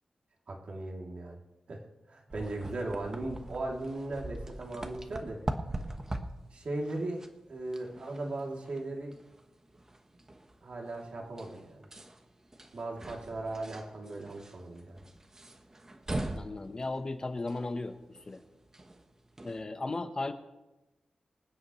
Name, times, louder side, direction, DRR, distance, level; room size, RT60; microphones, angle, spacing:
voice 1, 0.5-1.4 1.7-5.4 6.5-9.1 10.6-11.9 12.7-15.0, right 2 dB, 60° right, -1 dB, 2.8 m, -38 dB
sound 1, 2.3-19.6, right 1 dB, 20° right, 1.2 m, -43 dB
voice 2, 16.4-18.0 18.3-18.4 19.4-20.3, left 2 dB, 30° left, 7 dB, 1.0 m, -35 dB
25.0 x 9.7 x 3.2 m, 0.99 s
wide cardioid pair, 120°, 2 cm